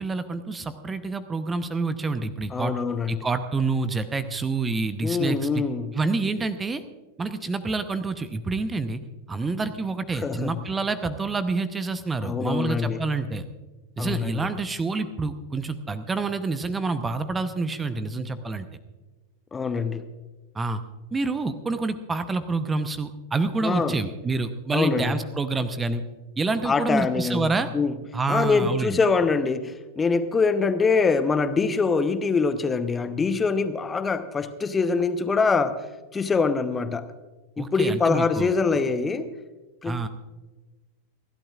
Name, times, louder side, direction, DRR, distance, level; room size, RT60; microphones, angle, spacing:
voice 1, 0.0-2.7 3.1-5.6 5.9-6.8 7.2-9.0 9.3-13.4 14.0-18.7 20.5-20.8 21.1-26.0 26.4-27.7 28.1-29.0 37.6-38.5 39.8-40.1, right 3 dB, 15° right, 11 dB, 0.8 m, -27 dB
voice 2, 2.5-3.3 5.0-5.9 10.2-10.6 12.2-13.0 14.0-14.5 19.5-20.1 23.6-24.0 24.7-25.1 26.6-27.9 28.3-35.8 36.1-37.0 37.6-39.3 39.8-40.1, left 4 dB, 15° left, 11 dB, 0.9 m, -24 dB
29.0 x 12.0 x 2.4 m, 1.2 s
figure-of-eight pair, 90°, 0 cm